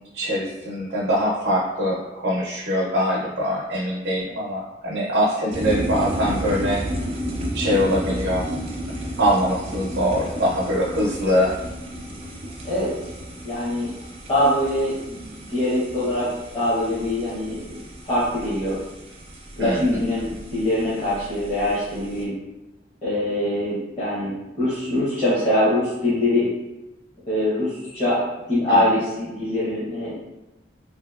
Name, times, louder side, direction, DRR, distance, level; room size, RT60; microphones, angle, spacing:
voice 1, 0.1-6.8 7.5-8.5 9.2-11.6 19.6-20.0 28.7-29.0, equal, 85° right, -3 dB, 0.5 m, -23 dB
sound 1, 5.5-22.2, equal, 30° right, 0.4 m, -33 dB
voice 2, 13.4-13.9 14.3-18.8 19.6-22.3 23.0-26.5 27.3-28.2 28.5-30.2, left 1 dB, 30° left, -12 dB, 0.8 m, -23 dB
2.7 x 2.7 x 2.3 m, 1.0 s
head